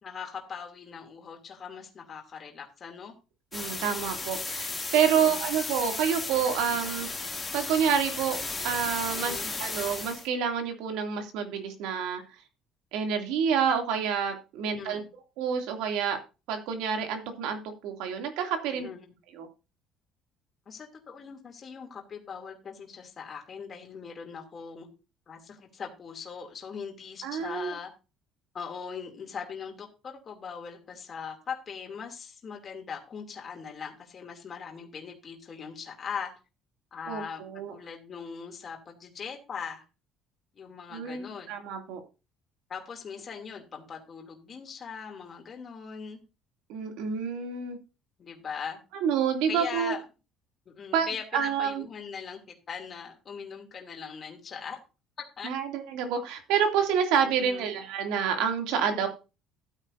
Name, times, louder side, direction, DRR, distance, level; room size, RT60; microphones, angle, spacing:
voice 1, 0.0-3.1 5.0-5.5 9.1-9.5 14.6-15.1 18.7-19.0 20.7-24.9 25.3-27.9 28.5-36.3 36.9-39.8 40.5-41.5 42.7-46.2 48.2-48.8 49.5-50.0 50.7-54.8 55.4-55.5 57.2-57.7 58.9-59.1, left 6 dB, 30° left, 1 dB, 2.8 m, -40 dB
sound 1, 3.5-10.3, left 3 dB, 10° left, 2.5 m, -35 dB
voice 2, 3.5-7.1 7.5-8.4 8.6-12.2 12.9-15.0 15.4-16.2 16.5-18.9 19.3-19.5 27.2-27.7 37.1-37.7 40.9-42.0 46.7-47.8 49.0-50.0 50.9-51.1 51.3-51.8 55.4-59.1, right 7 dB, 80° right, 4 dB, 2.7 m, -28 dB
15.0 x 9.1 x 2.7 m, 0.30 s
cardioid pair, 160°, 0 cm